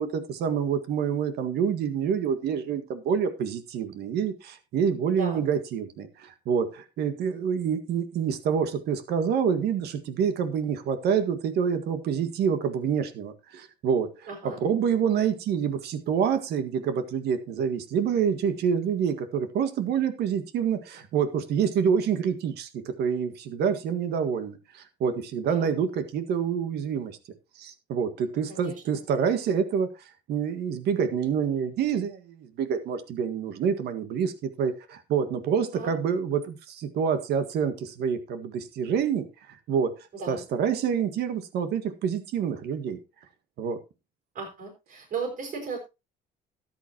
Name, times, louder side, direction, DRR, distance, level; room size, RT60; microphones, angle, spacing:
voice 1, 0.0-27.2 27.6-29.9 30.3-39.3 39.7-40.0 40.3-43.0 43.6-43.8, right 7 dB, 75° right, 10 dB, 1.7 m, -27 dB
voice 2, 5.1-5.4 14.3-14.6 25.4-25.7 28.5-28.8 35.7-35.9 40.1-40.4 44.3-45.8, right 4 dB, 55° right, 1 dB, 5.5 m, -35 dB
13.5 x 10.5 x 2.9 m, 0.26 s
cardioid pair, 110°, 17 cm